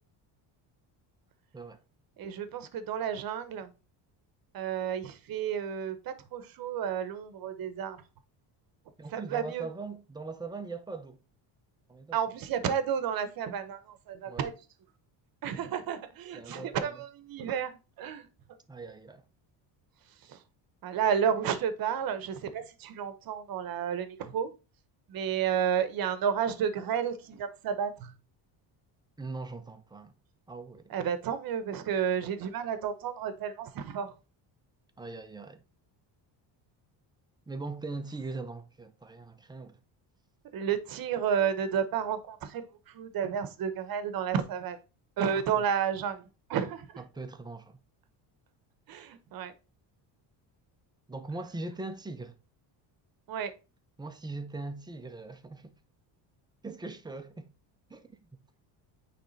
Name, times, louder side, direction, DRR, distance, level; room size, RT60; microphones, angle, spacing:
voice 1, 2.2-3.7 4.5-8.0 9.1-9.7 12.1-14.5 15.4-17.7 18.0-18.3 20.3-20.4 20.8-24.5 25.1-28.1 30.9-34.1 40.5-44.8 45.2-46.2 46.5-47.0 48.9-49.5 53.3-53.5, right 8 dB, 50° right, 1.0 m, -31 dB
voice 2, 9.0-11.2 11.9-12.2 14.3-14.5 16.3-17.0 18.7-19.2 29.2-30.1 30.5-31.0 35.0-35.6 37.5-39.8 45.6-45.7 47.0-47.8 51.1-52.3 54.0-55.7 56.6-57.5 57.9-58.3, right 3 dB, 10° right, 0.6 m, -40 dB
8.8 x 3.4 x 4.0 m
cardioid pair, 150°, 45 cm